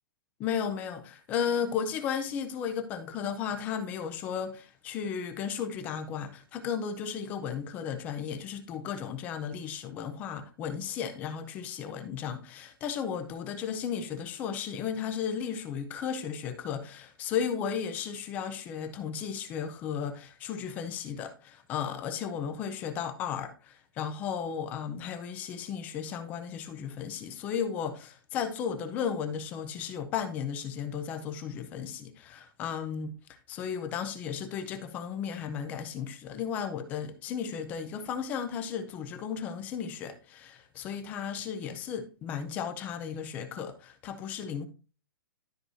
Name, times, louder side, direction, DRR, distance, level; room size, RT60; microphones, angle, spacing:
voice 1, 0.4-33.2 33.5-44.7, left 7 dB, 15° left, 0.5 m, -34 dB
12.5 x 4.7 x 2.6 m
hypercardioid pair, 180°, 12 cm